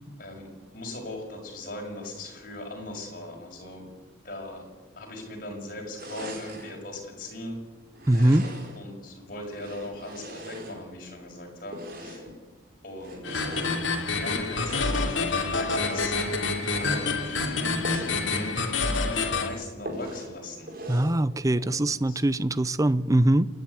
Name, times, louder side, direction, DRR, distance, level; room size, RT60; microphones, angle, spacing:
voice 1, 0.2-3.9 4.2-4.7 4.9-7.6 8.1-12.2 12.8-16.2 16.6-18.6 18.9-20.7 21.6-21.8 22.1-22.2, left 1 dB, 45° left, 6.4 m, -39 dB
sound 1, 6.0-6.8 7.9-8.9 9.4-11.1 11.7-12.4 13.0-13.8 14.5-15.1 15.7-16.2 16.7-17.2 17.8-18.2 18.6-18.7 19.0-19.1 19.9-20.3 20.7-21.2, equal, 50° right, 4.5 m, -40 dB
voice 2, 8.1-8.4 20.9-23.5, right 1 dB, 15° right, 0.6 m, -22 dB
sound 2, 13.2-19.5, left 3 dB, 75° left, 2.7 m, -27 dB
28.5 x 10.5 x 9.7 m
head